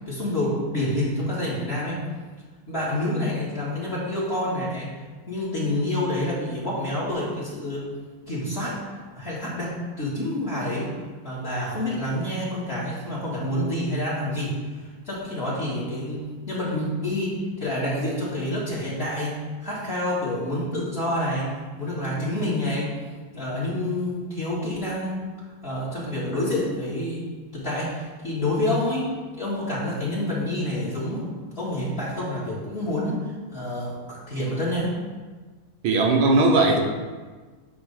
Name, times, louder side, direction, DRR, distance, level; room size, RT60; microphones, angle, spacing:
voice 1, 0.1-2.0 2.7-4.9 5.3-7.8 8.3-8.8 9.1-10.9 11.2-22.9 23.3-27.3 27.5-29.1 29.4-31.3 31.6-35.0, left 1 dB, 30° left, -7 dB, 1.9 m, -28 dB
voice 2, 35.8-36.8, right 2 dB, 90° right, 1 dB, 1.8 m, -18 dB
8.8 x 3.1 x 6.4 m, 1.4 s
omnidirectional pair, 2.2 m